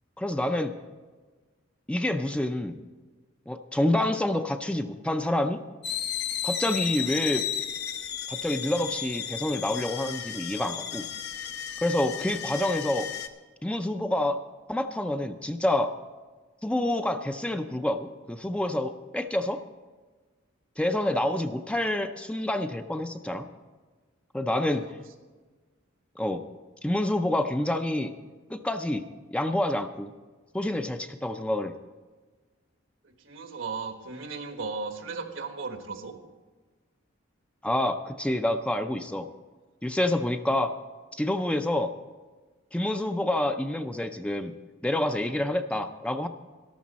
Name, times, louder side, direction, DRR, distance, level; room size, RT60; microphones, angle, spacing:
voice 1, 0.2-0.7 1.9-2.8 3.5-5.6 6.4-7.5 8.3-11.0 11.8-13.1 13.6-14.4 14.7-15.9 16.6-19.6 20.8-23.5 24.3-24.8 26.2-26.4 26.8-28.1 28.5-29.0 29.3-30.1 30.5-31.7 37.6-39.3 39.8-40.7 41.2-41.9 42.7-44.5 44.8-46.3, left 1 dB, 5° left, 7 dB, 0.4 m, -27 dB
sound 1, 5.8-13.3, left 9 dB, 55° left, 0.7 m, -33 dB
voice 2, 33.0-36.1, right 4 dB, 80° right, 6 dB, 1.3 m, -36 dB
13.5 x 12.0 x 4.1 m, 1.4 s
head